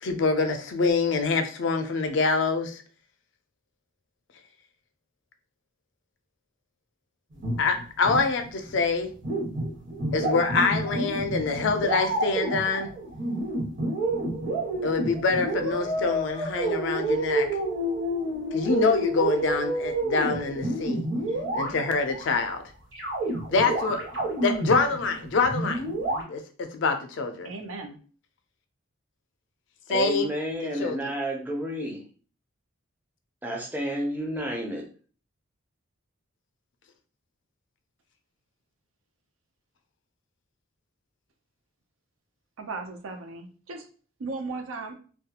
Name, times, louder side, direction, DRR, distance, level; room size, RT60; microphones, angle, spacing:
voice 1, 0.0-2.8 7.6-9.1 10.1-12.9 14.8-17.5 18.5-21.0 21.5-22.6 23.5-24.0 24.4-25.8 26.3-27.5 29.9-30.3 30.8-31.0, left 4 dB, 60° left, 6 dB, 0.4 m, -25 dB
sound 1, 7.4-8.8 9.1-22.2 22.9-26.2, right 1 dB, 60° right, 1.3 m, -29 dB
voice 2, 27.4-28.0 42.6-43.9 44.2-44.9, right 3 dB, 75° right, 5 dB, 0.5 m, -36 dB
voice 3, 29.9-32.1 33.4-34.9, right 1 dB, 10° right, -1 dB, 0.4 m, -31 dB
2.3 x 2.2 x 2.8 m, 0.39 s
head